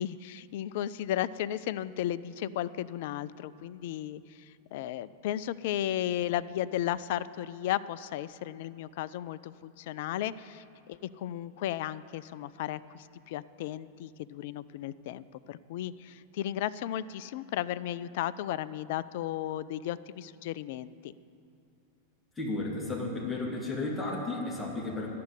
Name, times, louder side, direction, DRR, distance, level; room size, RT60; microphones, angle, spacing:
voice 1, 0.0-21.1, left 12 dB, 50° left, 16 dB, 0.4 m, -35 dB
voice 2, 22.4-25.1, left 2 dB, 10° left, -2 dB, 2.1 m, -33 dB
11.0 x 7.6 x 9.4 m, 2.6 s
figure-of-eight pair, 90°, 0 cm